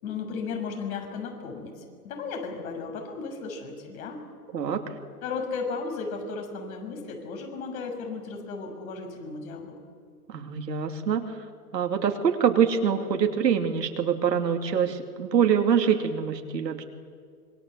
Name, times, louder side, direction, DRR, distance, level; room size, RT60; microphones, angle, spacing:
voice 1, 0.0-4.3 5.2-9.8, left 4 dB, 60° left, 4 dB, 6.8 m, -35 dB
voice 2, 10.3-11.2 11.7-16.8, right 7 dB, 85° right, 4 dB, 2.8 m, -24 dB
26.0 x 22.5 x 8.1 m, 2.1 s
hypercardioid pair, 130°, 49 cm